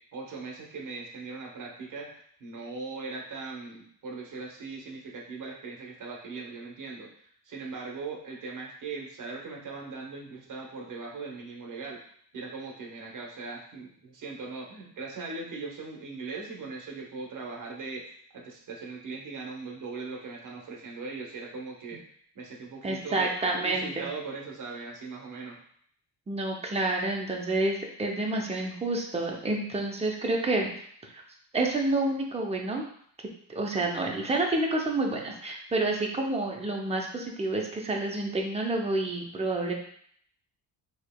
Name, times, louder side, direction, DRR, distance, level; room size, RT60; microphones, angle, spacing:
voice 1, 0.1-7.1 7.4-12.0 12.3-22.0 22.3-23.3 23.6-25.6, right 4 dB, 50° right, -1 dB, 1.0 m, -39 dB
voice 2, 22.8-24.1 26.3-30.7 31.0-31.2 31.5-32.8 33.5-39.7, right 2 dB, 15° right, 1 dB, 0.5 m, -29 dB
4.5 x 2.8 x 2.2 m, 0.63 s
cardioid pair, 125°, 41 cm